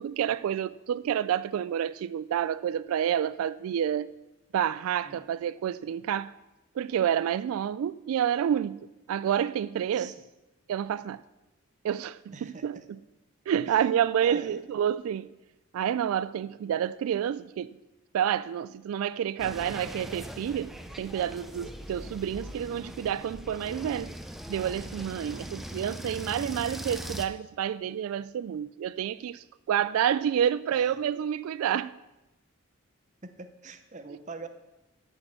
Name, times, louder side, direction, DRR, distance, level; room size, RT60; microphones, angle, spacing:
voice 1, 0.0-4.1 4.5-6.3 6.8-8.8 9.1-10.1 10.7-11.2 11.8-13.0 13.5-15.3 15.7-17.8 18.1-20.7 21.0-24.1 24.5-31.9, right 9 dB, 90° right, 0.3 m, -29 dB
voice 2, 12.3-12.9 13.6-13.9 14.2-14.6 25.2-25.5 30.7-31.0 33.2-34.5, right 4 dB, 35° right, 0.7 m, -44 dB
sound 1, 19.4-27.3, equal, ahead, 0.6 m, -41 dB
12.0 x 6.5 x 6.1 m
head